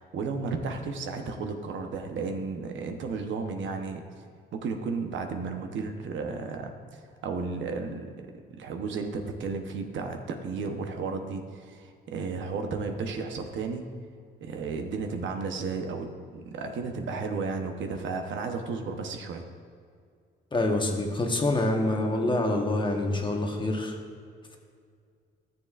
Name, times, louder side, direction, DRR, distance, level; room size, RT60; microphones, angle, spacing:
voice 1, 0.0-4.0 4.5-8.1 8.5-13.8 14.4-19.5, right 4 dB, 70° right, 5 dB, 0.9 m, -33 dB
voice 2, 20.5-23.9, left 2 dB, 25° left, 2 dB, 1.2 m, -26 dB
13.5 x 7.1 x 2.5 m, 2.2 s
cardioid pair, 90°, 20 cm